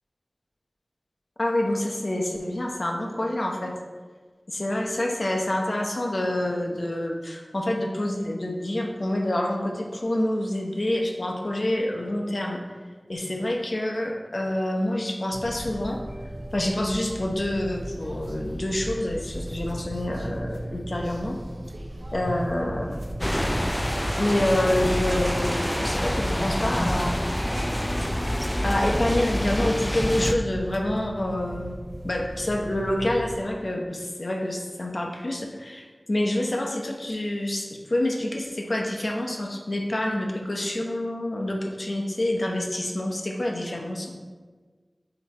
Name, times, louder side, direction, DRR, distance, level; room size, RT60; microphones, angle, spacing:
voice 1, 1.4-3.7 4.5-12.6 13.1-16.0 16.5-21.4 22.1-23.0 24.2-27.1 28.6-31.7 32.0-44.1, left 1 dB, 65° left, 0 dB, 0.8 m, -27 dB
sound 1, 15.3-33.4, right 1 dB, 60° right, 0.5 m, -37 dB
sound 2, 23.2-30.4, equal, 15° left, 0.3 m, -27 dB
7.8 x 3.0 x 4.2 m, 1.4 s
wide cardioid pair, 45°, 0 cm